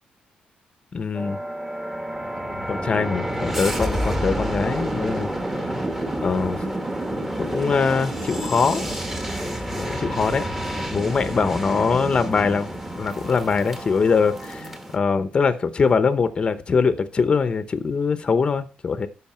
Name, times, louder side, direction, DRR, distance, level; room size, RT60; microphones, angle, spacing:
voice 1, 0.9-1.4 2.7-5.3 6.2-6.6 7.4-8.8 9.7-10.4 10.9-19.1, left 5 dB, 35° left, 11 dB, 0.9 m, -22 dB
sound 1, 1.1-15.0, right 1 dB, 10° right, 1.4 m, -29 dB
13.0 x 5.7 x 4.4 m, 0.33 s
cardioid pair, 150°, 3 cm